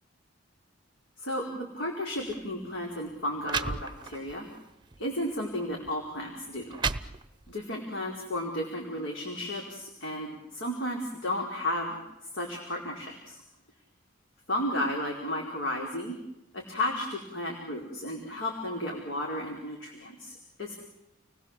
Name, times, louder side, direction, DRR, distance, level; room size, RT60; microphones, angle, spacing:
voice 1, 1.2-4.5 5.0-6.8 7.5-12.0 12.3-13.4 14.5-16.1 16.5-20.8, left 1 dB, 70° left, 0 dB, 4.6 m, -33 dB
sound 1, 2.2-2.4 3.1-3.2 3.4-4.4 4.9-5.1 5.9-6.0 6.5-7.6, right 4 dB, 25° right, 0.9 m, -33 dB
30.0 x 20.0 x 7.4 m, 0.93 s
head